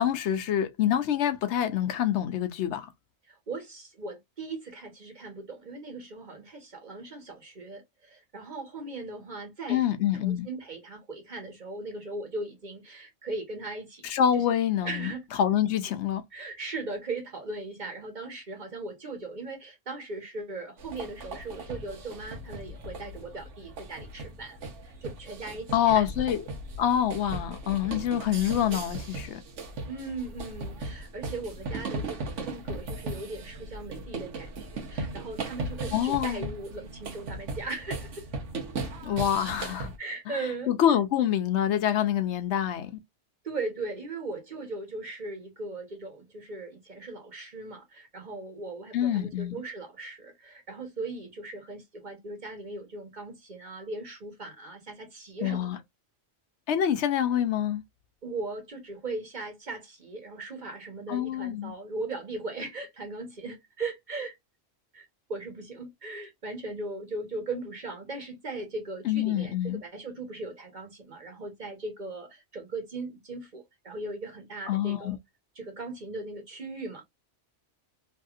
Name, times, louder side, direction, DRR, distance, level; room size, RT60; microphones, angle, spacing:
voice 1, 0.0-2.9 9.7-10.5 14.0-15.1 15.4-16.2 25.7-26.4 26.8-29.4 35.9-36.5 39.0-39.9 40.7-42.9 48.9-49.5 55.4-55.8 56.7-57.8 61.1-61.7 69.0-69.8 74.7-75.2, left 10 dB, 75° left, 0.9 m, -26 dB
voice 2, 3.3-9.8 10.2-14.1 14.3-14.4 14.8-15.2 16.3-26.0 29.9-38.3 40.0-40.7 43.4-55.7 58.2-64.3 64.9-75.2 75.5-77.0, right 3 dB, 40° right, 1.1 m, -38 dB
sound 1, 20.8-40.0, right 2 dB, 85° right, 1.2 m, -38 dB
3.1 x 2.7 x 2.4 m
omnidirectional pair, 1.2 m